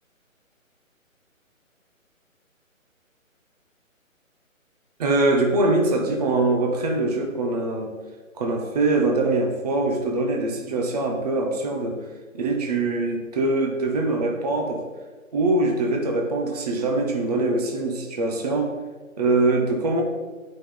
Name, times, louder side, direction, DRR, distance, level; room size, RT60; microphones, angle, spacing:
voice 1, 5.0-7.9 8.4-12.0 12.3-14.8 15.3-18.7 19.2-20.0, right 2 dB, 30° right, 2 dB, 0.8 m, -23 dB
9.6 x 5.2 x 3.8 m, 1.3 s
hypercardioid pair, 155°, 41 cm